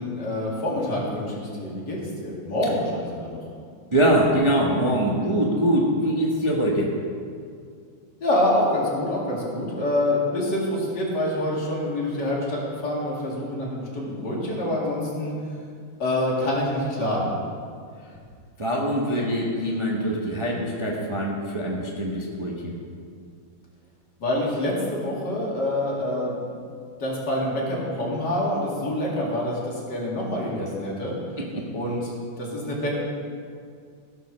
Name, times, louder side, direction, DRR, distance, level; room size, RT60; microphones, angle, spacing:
voice 1, 0.0-3.4 8.2-15.3 16.0-17.4 24.2-26.4 27.0-31.1 31.7-32.9, left 1 dB, 55° left, -4 dB, 2.8 m, -26 dB
voice 2, 3.9-6.9 18.6-22.7 31.5-31.6, right 1 dB, 20° right, -3 dB, 0.9 m, -23 dB
16.0 x 5.4 x 6.3 m, 2.2 s
omnidirectional pair, 2.2 m